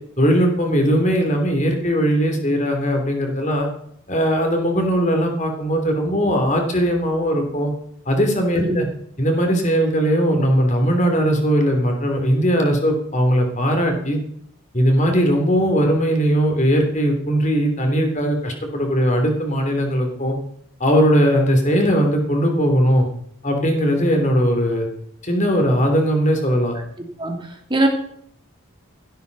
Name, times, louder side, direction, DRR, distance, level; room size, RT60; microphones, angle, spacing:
voice 1, 0.2-3.7 4.1-7.7 8.1-8.9 9.2-14.2 14.7-20.4 20.8-23.1 23.4-24.9 25.2-26.7, equal, 35° left, 3 dB, 3.1 m, -19 dB
voice 2, 27.2-27.9, right 1 dB, 20° right, 2 dB, 2.6 m, -21 dB
16.0 x 12.5 x 4.1 m, 0.69 s
head